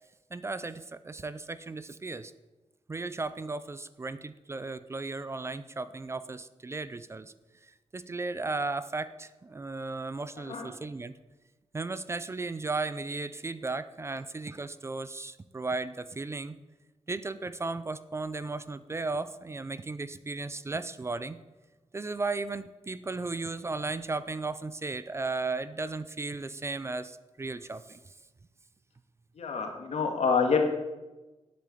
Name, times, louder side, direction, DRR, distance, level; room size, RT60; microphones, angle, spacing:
voice 1, 0.3-2.3 2.9-7.3 7.9-11.1 11.7-16.6 17.1-21.4 21.9-28.1, right 3 dB, 25° right, 14 dB, 0.4 m, -35 dB
voice 2, 10.4-10.7 29.4-30.6, left 5 dB, 75° left, 4 dB, 2.0 m, -27 dB
9.4 x 8.4 x 8.5 m, 1.1 s
wide cardioid pair, 140°, 11 cm